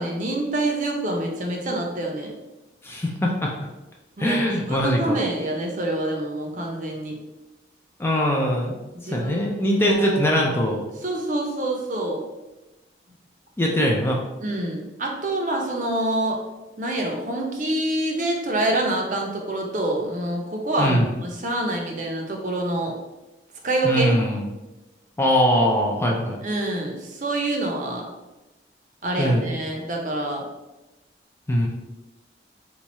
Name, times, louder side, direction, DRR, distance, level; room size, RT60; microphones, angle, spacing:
voice 1, 0.0-2.3 4.2-7.2 9.1-10.5 11.0-12.2 14.4-16.4 16.8-22.9 23.6-24.1 26.4-28.1 29.0-30.4, right 1 dB, 45° right, 1 dB, 0.5 m, -26 dB
voice 2, 2.8-3.5 4.2-5.2 8.0-8.7 9.0-10.8 13.6-14.2 20.8-21.1 23.8-24.5 25.2-26.4 29.2-29.5 31.5-31.7, equal, 15° left, -1 dB, 0.3 m, -21 dB
3.0 x 2.3 x 4.0 m, 1.0 s
head